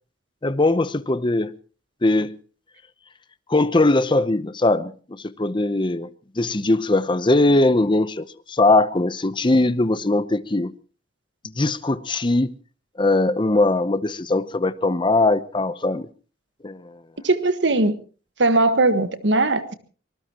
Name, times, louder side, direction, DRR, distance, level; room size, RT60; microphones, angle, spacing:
voice 1, 0.4-1.5 2.0-2.3 3.5-6.1 6.4-10.7 11.6-12.5 13.0-16.1 16.6-17.0, left 2 dB, 25° left, 0.8 m, -20 dB
voice 2, 17.2-18.0 18.4-19.7, right 2 dB, 75° right, 1.6 m, -19 dB
25.0 x 19.5 x 3.0 m
head